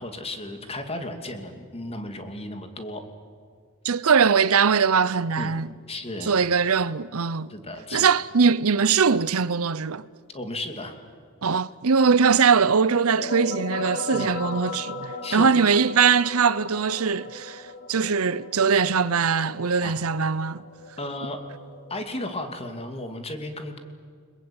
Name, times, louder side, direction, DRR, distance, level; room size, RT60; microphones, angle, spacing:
voice 1, 0.0-3.0 5.3-5.6 5.9-6.4 7.5-8.1 10.3-11.0 14.1-14.4 15.2-15.5 19.8-20.0 21.0-21.4 21.9-23.8, left 1 dB, 30° left, 2.7 m, -34 dB
voice 2, 3.8-5.7 6.2-7.5 7.9-10.0 11.4-20.6, right 6 dB, 75° right, 0.7 m, -21 dB
sound 1, 12.9-22.3, left 3 dB, 55° left, 3.0 m, -38 dB
30.0 x 21.5 x 8.9 m
head